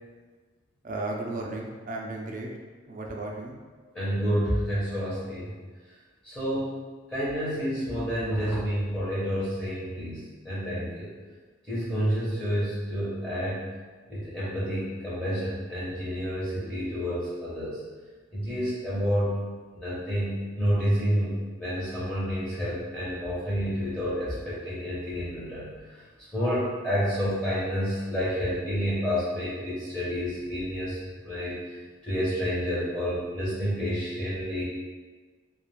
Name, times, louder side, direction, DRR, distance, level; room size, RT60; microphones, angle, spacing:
voice 1, 0.8-2.5 2.9-3.6, right 2 dB, 45° right, 0 dB, 0.4 m, -34 dB
voice 2, 3.9-5.5 6.2-6.7 7.1-11.1 11.7-13.7 14.1-17.8 18.3-19.4 19.7-26.0 26.3-31.0 31.2-31.6 32.0-34.6, equal, 5° left, -10 dB, 0.6 m, -29 dB
2.3 x 2.2 x 3.0 m, 1.4 s
head